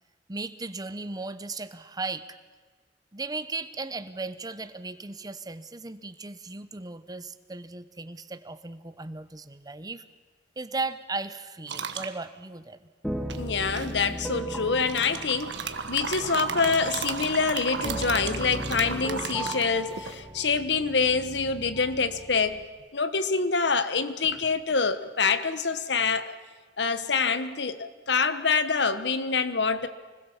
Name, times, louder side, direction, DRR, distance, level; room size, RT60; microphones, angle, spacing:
voice 1, 0.3-2.4 3.1-10.0 10.6-12.9, right 3 dB, 20° right, 12 dB, 1.0 m, -36 dB
sound 1, 11.7-12.1 13.3-14.1 14.8-20.2, right 6 dB, 90° right, 1.4 m, -34 dB
sound 2, 13.0-22.6, right 1 dB, ahead, 1.5 m, -37 dB
voice 2, 13.4-22.6 22.9-26.4 26.8-29.9, left 5 dB, 75° left, 12 dB, 1.2 m, -26 dB
25.5 x 20.0 x 7.3 m, 1.4 s
head